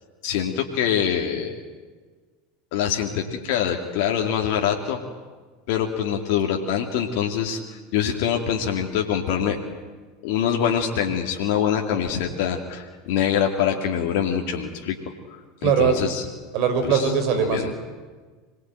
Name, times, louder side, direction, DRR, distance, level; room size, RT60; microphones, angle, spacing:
voice 1, 0.2-1.6 2.7-5.0 5.7-9.6 10.2-15.0 15.6-16.2 16.9-17.1 17.4-17.7, left 8 dB, 65° left, 1 dB, 2.6 m, -24 dB
voice 2, 15.6-16.0 16.5-17.7, right 6 dB, 55° right, 8 dB, 5.7 m, -21 dB
26.5 x 20.5 x 9.2 m, 1.4 s
hypercardioid pair, 85°, 0 cm